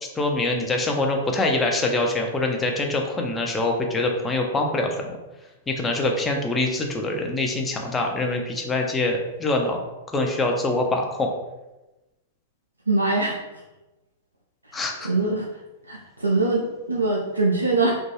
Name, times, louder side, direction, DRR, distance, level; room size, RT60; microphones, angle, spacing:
voice 1, 0.0-5.2 5.7-9.8 10.1-11.3 14.7-15.1, left 2 dB, 15° left, 2 dB, 0.4 m, -24 dB
voice 2, 12.9-13.4 14.7-15.5 15.9-17.9, right 2 dB, 80° right, -2 dB, 0.3 m, -23 dB
2.3 x 2.2 x 3.1 m, 1.0 s
figure-of-eight pair, 100°, 0 cm